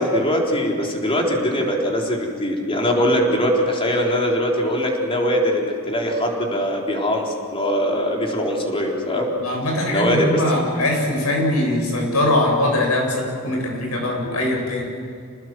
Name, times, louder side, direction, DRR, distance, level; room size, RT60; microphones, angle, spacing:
voice 1, 0.0-9.3 9.9-10.4, equal, 25° left, -1 dB, 3.9 m, -21 dB
voice 2, 9.4-14.9, left 1 dB, 80° left, 0 dB, 7.9 m, -21 dB
28.0 x 20.0 x 7.9 m, 2.3 s
head